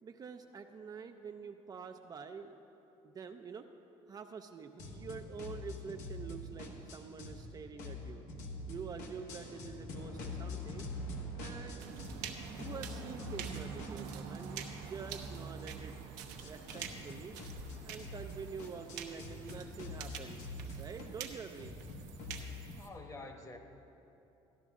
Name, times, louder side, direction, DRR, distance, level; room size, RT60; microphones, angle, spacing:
voice 1, 0.0-2.6 3.0-3.7 4.1-8.3 8.7-10.9 11.4-11.9 12.6-16.0 16.4-17.4 17.8-20.4 20.8-21.8, right 5 dB, 30° right, 5 dB, 0.4 m, -47 dB
sound 1, 4.8-7.5 7.8-12.3 12.6-22.8, left 2 dB, 85° left, 1.3 m, -45 dB
sound 2, 11.8-22.9, right 6 dB, 90° right, 0.9 m, -46 dB
voice 2, 22.7-23.6, left 2 dB, 25° left, 4 dB, 1.1 m, -48 dB
13.0 x 11.0 x 3.6 m, 3.0 s
cardioid pair, 105°, 12 cm